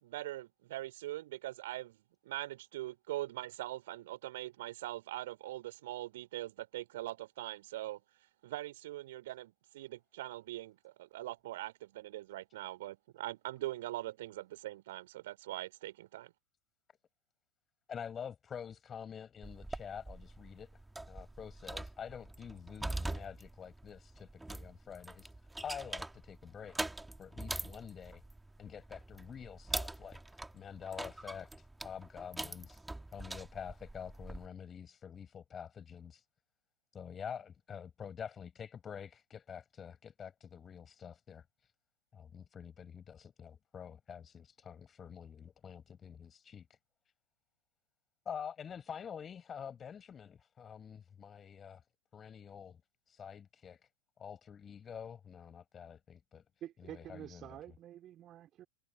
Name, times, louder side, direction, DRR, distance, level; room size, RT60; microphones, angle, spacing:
voice 1, 0.0-2.0 2.2-8.0 8.4-16.3, right 16 dB, 55° right, 5.0 m, -42 dB
voice 2, 17.9-26.8 27.2-28.2 28.6-36.2 36.9-41.7 42.1-46.8 48.2-51.9 52.1-52.8 53.1-53.9 54.2-56.4 56.8-57.6, left 7 dB, 20° left, 6.6 m, -47 dB
sound 1, 19.4-34.5, right 2 dB, 5° right, 2.5 m, -44 dB
voice 3, 56.6-58.7, right 12 dB, 30° right, 4.2 m, -48 dB
figure-of-eight pair, 90°, 0 cm